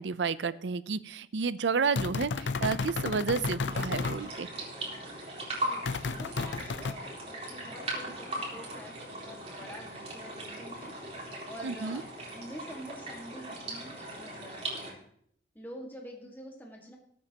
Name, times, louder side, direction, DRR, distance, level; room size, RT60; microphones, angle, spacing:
voice 1, 0.0-4.5 11.6-12.0, right 5 dB, 85° right, 16 dB, 0.6 m, -31 dB
sound 1, 2.0-4.2 5.9-6.9, left 4 dB, 85° left, 0.5 m, -32 dB
sound 2, 3.7-14.9, right 1 dB, 35° right, 3.9 m, -39 dB
voice 2, 5.5-10.9 11.5-12.0 12.3-15.0 15.5-17.0, equal, 10° left, 0 dB, 1.8 m, -47 dB
20.0 x 8.9 x 2.9 m, 0.67 s
head